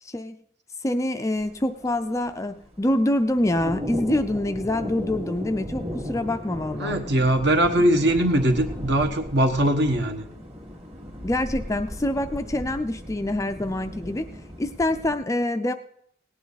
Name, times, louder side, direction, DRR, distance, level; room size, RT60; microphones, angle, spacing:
voice 1, 0.0-0.4 0.8-7.0 11.2-14.3 14.6-15.7, left 1 dB, 15° left, 8 dB, 0.4 m, -25 dB
sound 1, 1.3-15.2, left 1 dB, 30° right, 1.9 m, -36 dB
voice 2, 6.8-10.2, right 1 dB, 55° right, 5 dB, 1.4 m, -21 dB
18.0 x 9.3 x 4.0 m, 0.70 s
head